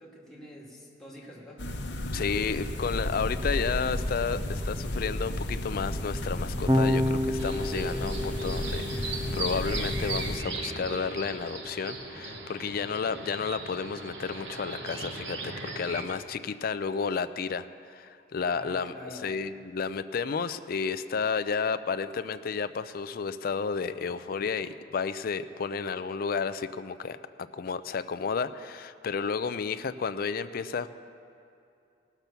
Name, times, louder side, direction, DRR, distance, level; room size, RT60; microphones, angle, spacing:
voice 1, 0.0-1.6 18.4-19.3, equal, 5° left, -4 dB, 2.1 m, -47 dB
sound 1, 1.6-10.4, left 1 dB, 70° left, 1.0 m, -33 dB
voice 2, 2.1-18.9 19.2-27.2 27.5-30.9, left 5 dB, 55° left, 12 dB, 0.4 m, -32 dB
Electric guitar / Bass guitar, 6.7-13.1, left 1 dB, 20° right, 0.6 m, -32 dB
sound 2, 7.4-16.1, right 3 dB, 80° right, 1.2 m, -38 dB
18.0 x 6.0 x 6.8 m, 2.6 s
head